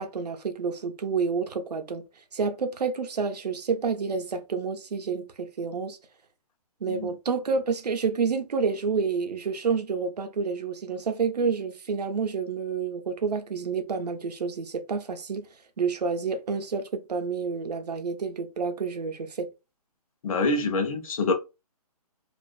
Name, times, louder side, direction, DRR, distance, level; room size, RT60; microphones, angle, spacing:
voice 1, 0.0-2.1 2.3-6.0 6.8-15.5 15.8-19.5, right 5 dB, 85° right, 0.6 m, -29 dB
voice 2, 20.2-21.3, left 3 dB, 60° left, 0.7 m, -25 dB
2.4 x 2.3 x 2.4 m
hypercardioid pair, 145°, 20 cm